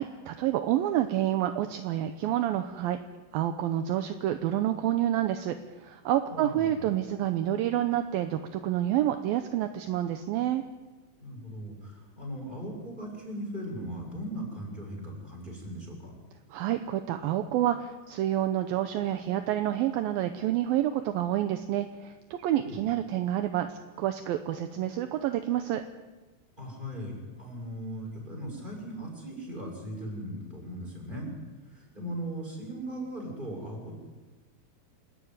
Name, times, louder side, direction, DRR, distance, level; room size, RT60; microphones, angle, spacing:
voice 1, 0.0-3.0 3.3-5.6 5.8-10.6 16.5-25.8, right 12 dB, 75° right, 8 dB, 2.3 m, -28 dB
voice 2, 6.3-6.8 11.2-16.1 22.6-22.8 26.6-31.3 31.7-33.9, right 1 dB, 10° right, -1 dB, 7.0 m, -38 dB
28.0 x 13.5 x 9.5 m, 1.3 s
omnidirectional pair, 4.8 m